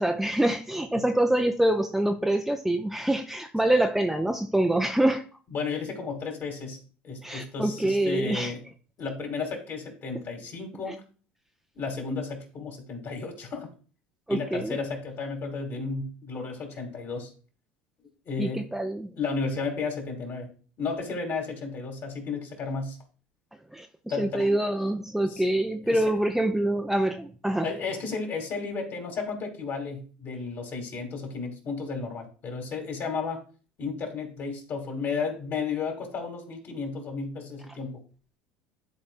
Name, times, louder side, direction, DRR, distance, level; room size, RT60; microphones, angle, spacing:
voice 1, 0.0-5.2 7.2-8.5 10.9-11.0 14.3-14.8 18.4-19.1 23.7-23.9 24.2-27.7, right 1 dB, 5° right, 5 dB, 0.5 m, -25 dB
voice 2, 5.5-6.8 7.0-8.6 9.0-11.0 11.7-13.7 14.3-17.3 18.2-18.7 19.2-20.5 20.8-23.0 24.1-24.5 25.3-25.5 25.8-26.0 27.6-33.4 33.8-38.0, left 4 dB, 45° left, 3 dB, 2.6 m, -33 dB
11.0 x 4.3 x 2.5 m, 0.39 s
hypercardioid pair, 85°, 5 cm